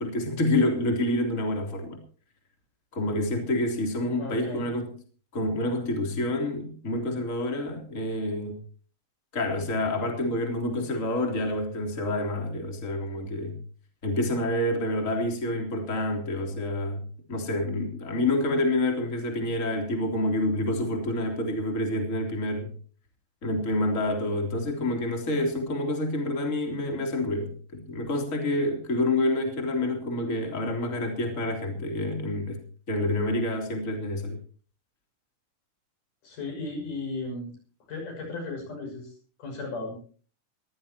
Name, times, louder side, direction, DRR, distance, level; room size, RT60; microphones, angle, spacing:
voice 1, 0.0-2.0 2.9-4.9 5.3-8.6 9.3-13.6 14.0-17.0 17.3-22.7 23.4-32.6 32.9-34.4, left 1 dB, 25° left, 3 dB, 3.6 m, -28 dB
voice 2, 4.2-4.6 36.2-37.6 37.9-40.0, left 3 dB, 85° left, 3 dB, 8.0 m, -35 dB
23.0 x 15.0 x 2.9 m, 0.41 s
omnidirectional pair, 3.6 m